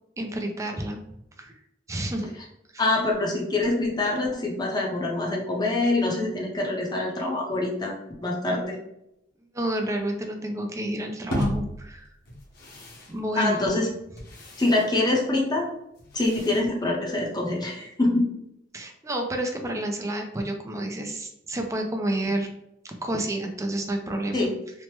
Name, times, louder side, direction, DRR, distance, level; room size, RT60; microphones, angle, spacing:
voice 1, 0.2-1.0 1.4-1.5 1.9-2.3 2.7-2.8 9.5-12.1 13.1-13.6 18.7-22.5 22.8-24.5, right 1 dB, 15° right, 3 dB, 0.4 m, -30 dB
voice 2, 2.8-8.8 13.3-13.9 14.6-15.7 16.1-18.3 24.3-24.6, left 2 dB, 20° left, -2 dB, 0.6 m, -25 dB
sound 1, 11.3-17.5, left 1 dB, 55° left, 0.8 m, -37 dB
3.1 x 2.0 x 3.0 m, 0.82 s
head